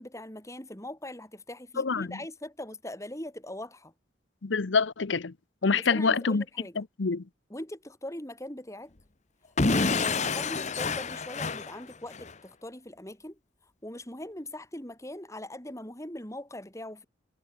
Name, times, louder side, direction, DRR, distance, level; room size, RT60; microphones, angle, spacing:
voice 1, 0.0-3.9 5.7-6.8 7.5-8.9 9.7-13.4 13.8-17.1, left 1 dB, 15° left, 5.0 m, -41 dB
voice 2, 1.8-2.2 4.4-5.3 5.6-6.4 6.8-7.2, left 4 dB, 70° left, 0.8 m, -26 dB
Explosion / Shatter, 9.6-12.3, left 4 dB, 40° left, 1.1 m, -28 dB
head